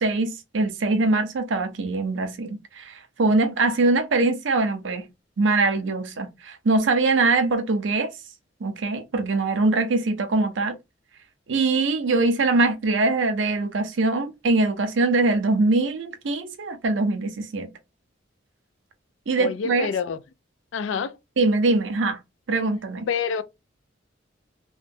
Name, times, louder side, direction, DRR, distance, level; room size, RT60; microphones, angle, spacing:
voice 1, 0.0-5.1 5.4-8.1 8.6-10.8 11.5-17.7 19.3-19.9 21.4-22.2 22.5-23.1, right 3 dB, 75° right, 0.6 m, -23 dB
voice 2, 19.4-20.2 20.7-21.1 23.1-23.4, left 6 dB, 80° left, 0.4 m, -27 dB
2.9 x 2.1 x 2.5 m
head